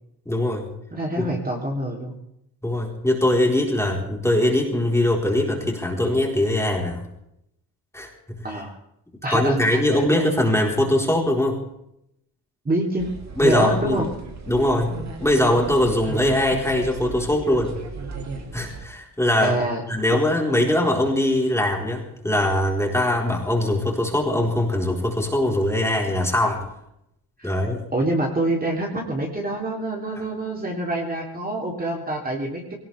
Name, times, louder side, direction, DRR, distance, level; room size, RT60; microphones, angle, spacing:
voice 1, 0.3-0.7 1.2-1.3 2.6-7.0 7.9-8.1 8.3-8.5 9.3-11.6 13.4-14.0 14.5-17.8 18.5-19.6 19.9-26.6 27.4-27.8, left 1 dB, 5° left, -1 dB, 4.3 m, -21 dB
voice 2, 0.9-2.2 8.4-8.8 9.2-9.6 9.9-10.0 12.6-13.1 13.4-14.1 19.4-19.8 20.1-20.2 27.4-27.5 27.9-32.7, right 1 dB, 25° right, -1 dB, 3.5 m, -26 dB
sound 1, 13.0-18.9, right 4 dB, 45° right, 3.1 m, -35 dB
22.0 x 18.5 x 3.5 m, 0.79 s
cardioid pair, 125°, 37 cm